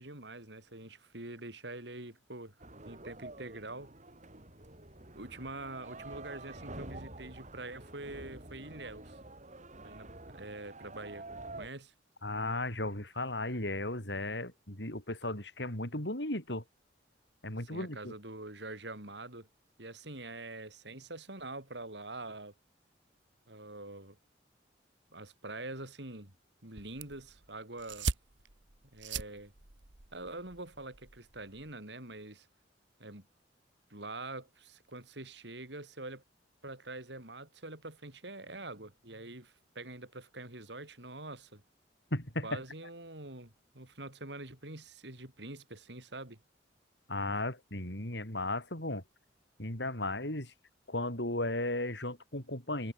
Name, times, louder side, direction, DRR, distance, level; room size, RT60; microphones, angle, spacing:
voice 1, 0.0-2.6 2.8-3.9 5.2-9.2 9.8-11.2 11.6-11.9 17.7-19.5 19.8-22.5 23.5-24.2 25.1-26.3 26.6-28.1 28.9-29.5 30.1-32.5 33.0-33.3 33.9-36.2 36.6-41.6 42.4-46.4, right 2 dB, 65° right, 5.7 m, -45 dB
sound 1, 2.6-11.7, right 2 dB, 40° right, 5.0 m, -48 dB
voice 2, 12.2-16.6 17.4-18.1 42.1-42.6 47.1-49.0 49.6-50.5 50.9-52.9, left 2 dB, 65° left, 7.7 m, -35 dB
sound 2, 26.8-31.8, right 4 dB, 85° right, 2.0 m, -41 dB
head